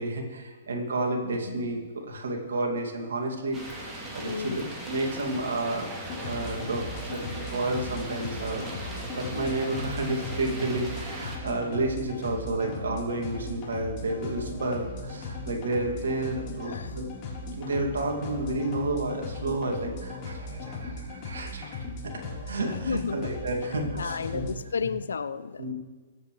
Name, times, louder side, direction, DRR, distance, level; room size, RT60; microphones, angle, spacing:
voice 1, 0.0-5.9 6.2-6.8 7.1-17.1 17.5-21.9 22.4-24.5 25.6-25.7, right 2 dB, 65° right, 1 dB, 2.4 m, -31 dB
voice 2, 1.2-1.7 4.1-4.8 16.7-16.9 22.9-23.3 23.9-25.7, left 5 dB, 70° left, 14 dB, 0.5 m, -33 dB
sound 1, 3.5-11.4, right 1 dB, 15° right, 3.1 m, -39 dB
sound 2, 6.1-24.5, left 2 dB, 35° left, 4.0 m, -38 dB
22.5 x 8.2 x 3.3 m, 1.4 s
figure-of-eight pair, 120°, 0 cm